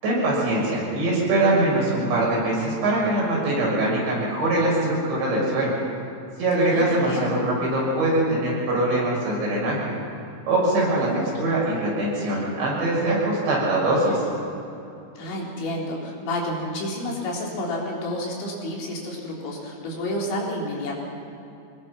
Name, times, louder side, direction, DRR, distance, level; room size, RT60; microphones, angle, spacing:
voice 1, 0.0-5.7 6.4-9.9 10.5-11.1 11.4-14.2, right 1 dB, 65° right, -5 dB, 8.7 m, -22 dB
voice 2, 6.6-7.4 10.7-11.3 15.2-21.0, left 1 dB, 70° left, -3 dB, 5.7 m, -30 dB
25.5 x 20.0 x 6.1 m, 2.7 s
omnidirectional pair, 5.4 m